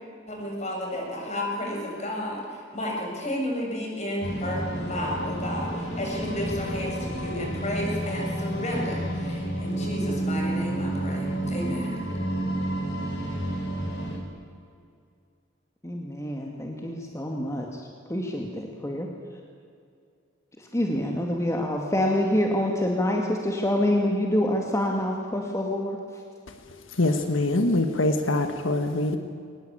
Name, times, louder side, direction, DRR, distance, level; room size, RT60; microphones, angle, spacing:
voice 1, 0.3-12.0, left 1 dB, 35° left, -1 dB, 7.1 m, -32 dB
sound 1, 4.2-14.2, right 1 dB, 65° left, 4.8 m, -30 dB
voice 2, 15.8-17.7 18.1-19.1 20.7-26.0, left 1 dB, 15° left, 1 dB, 2.1 m, -26 dB
voice 3, 27.0-29.2, left 2 dB, 90° left, 7 dB, 1.5 m, -23 dB
23.5 x 20.0 x 8.8 m, 2.3 s
head